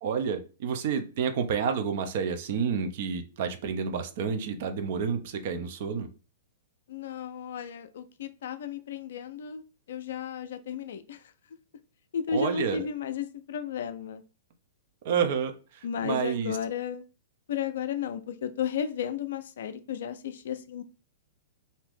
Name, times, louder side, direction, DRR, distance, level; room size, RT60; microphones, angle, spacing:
voice 1, 0.0-6.1 12.3-12.8 15.0-16.5, right 6 dB, 55° right, 7 dB, 0.6 m, -29 dB
voice 2, 6.9-11.3 12.1-14.2 15.8-17.0 17.5-20.8, left 7 dB, 65° left, 10 dB, 0.4 m, -34 dB
2.7 x 2.5 x 3.5 m, 0.34 s
hypercardioid pair, 110°, 0 cm